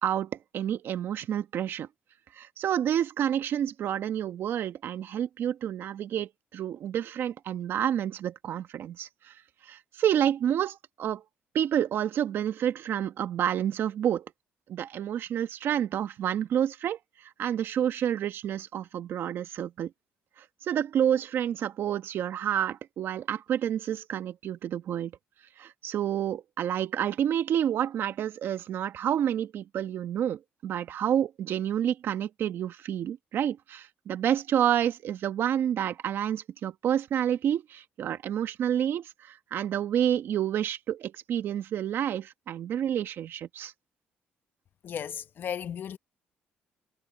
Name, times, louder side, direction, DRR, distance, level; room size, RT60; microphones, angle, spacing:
voice 1, 0.0-1.9 2.3-9.3 9.7-11.2 11.5-14.2 14.7-19.9 20.6-25.1 25.6-43.7, right 10 dB, 65° right, 1.6 m, -29 dB
voice 2, 44.8-46.0, left 8 dB, 55° left, 1.1 m, -35 dB
cardioid pair, 90°, 4 cm